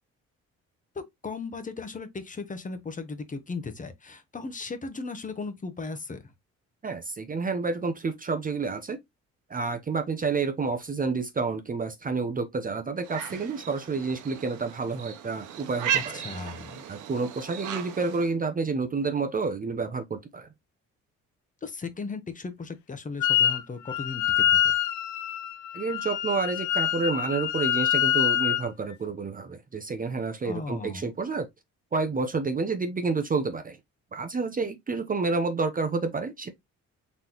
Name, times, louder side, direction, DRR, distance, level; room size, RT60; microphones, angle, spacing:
voice 1, 0.9-6.3 15.9-16.8 21.6-24.7 30.4-31.1, left 4 dB, 25° left, 1.0 m, -37 dB
voice 2, 6.8-9.0 9.5-16.2 16.9-20.5 25.7-31.5 31.9-33.8 34.1-36.5, right 4 dB, 30° right, 0.7 m, -29 dB
sound 1, 13.0-18.3, right 10 dB, 80° right, 0.9 m, -35 dB
Wind instrument woodwind instrument, 23.2-23.6 23.9-28.7, left 11 dB, 80° left, 0.6 m, -25 dB
4.1 x 3.6 x 2.9 m
cardioid pair, 90°, 30 cm